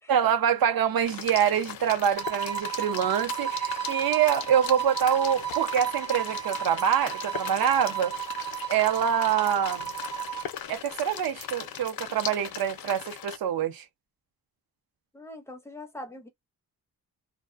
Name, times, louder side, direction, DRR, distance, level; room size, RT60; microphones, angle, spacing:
voice 1, 0.1-8.4 8.7-9.9 10.7-13.8, right 9 dB, 70° right, 0.6 m, -25 dB
sound 1, 1.0-13.4, left 9 dB, 70° left, 0.5 m, -39 dB
sound 2, 2.2-10.5, right 10 dB, 45° right, 0.9 m, -33 dB
voice 2, 15.1-16.3, left 1 dB, 5° left, 0.5 m, -42 dB
2.4 x 2.1 x 2.4 m
wide cardioid pair, 160°, 37 cm